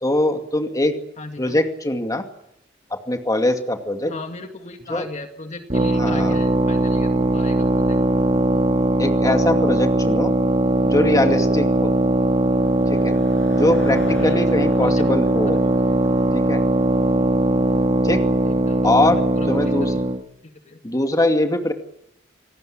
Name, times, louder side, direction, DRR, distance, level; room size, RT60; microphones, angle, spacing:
voice 1, 0.0-0.9 1.4-2.3 3.1-4.1 4.9-5.0 6.0-6.4 9.0-10.3 10.8-11.9 12.9-13.1 13.5-15.6 16.3-16.6 18.0-18.3 18.8-19.9 20.8-21.7, left 1 dB, 20° left, 5 dB, 2.4 m, -22 dB
voice 2, 1.2-1.6 4.0-8.0 14.0-14.5 14.8-15.1 15.5-15.6 18.4-20.1 20.4-20.8, left 2 dB, 35° left, 5 dB, 2.1 m, -37 dB
sound 1, 5.7-20.2, right 1 dB, 35° right, 1.8 m, -19 dB
Car passing by / Engine, 11.7-17.7, left 1 dB, 85° left, 6.2 m, -40 dB
27.5 x 18.5 x 8.8 m, 0.79 s
head